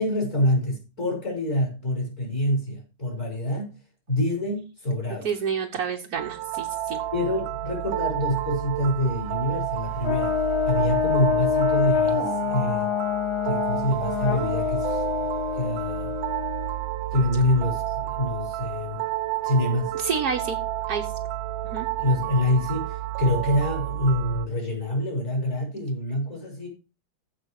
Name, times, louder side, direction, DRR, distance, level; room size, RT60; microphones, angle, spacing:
voice 1, 0.0-3.7 4.1-5.5 7.1-10.3 10.7-12.9 13.4-15.0 15.5-16.1 17.1-19.0 19.4-19.9 22.0-26.7, left 1 dB, 35° left, 5.5 m, -26 dB
voice 2, 5.2-7.0 19.9-20.6 20.9-21.1 21.6-21.9, right 6 dB, 50° right, 1.5 m, -29 dB
sound 1, 6.1-24.5, right 13 dB, 75° right, 1.4 m, -31 dB
Brass instrument, 10.0-16.8, left 8 dB, 75° left, 2.3 m, -26 dB
15.5 x 5.5 x 4.9 m
omnidirectional pair, 2.3 m